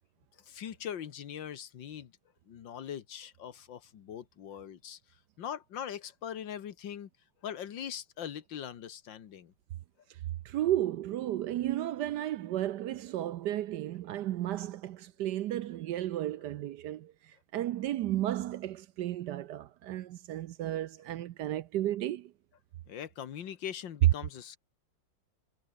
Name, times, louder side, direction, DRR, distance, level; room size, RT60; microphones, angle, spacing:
voice 1, 0.4-2.1 2.5-5.0 5.4-7.1 7.4-9.5 22.9-24.6, left 9 dB, 70° left, 1.9 m, -41 dB
voice 2, 10.4-22.3, right 13 dB, 70° right, 1.1 m, -34 dB
omnidirectional pair, 2.1 m